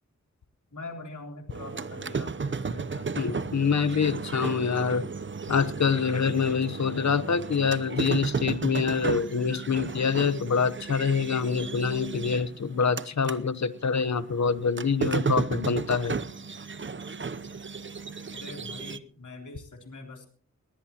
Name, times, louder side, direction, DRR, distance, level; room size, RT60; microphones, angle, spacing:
voice 1, 0.7-3.5 18.3-20.3, left 2 dB, 85° left, 3 dB, 3.6 m, -43 dB
sound 1, 1.5-13.4 13.8-19.0, right 4 dB, 40° right, 0.8 m, -34 dB
voice 2, 3.2-5.1 5.5-16.2, left 6 dB, 65° left, 15 dB, 1.0 m, -26 dB
19.0 x 19.0 x 3.0 m, 0.43 s
cardioid pair, 55°, 30 cm